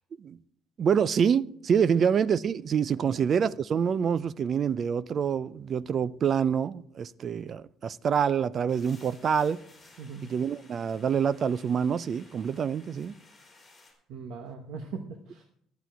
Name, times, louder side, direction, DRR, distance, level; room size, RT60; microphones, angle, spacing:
voice 1, 0.8-9.6 10.2-13.1, right 7 dB, 30° right, 0.3 m, -26 dB
voice 2, 3.0-3.3 10.0-10.3 14.1-15.4, right 5 dB, 55° right, 1.1 m, -40 dB
sound 1, 8.7-13.9, left 3 dB, 10° left, 3.7 m, -56 dB
12.5 x 9.5 x 4.5 m
cardioid pair, 175°, 0 cm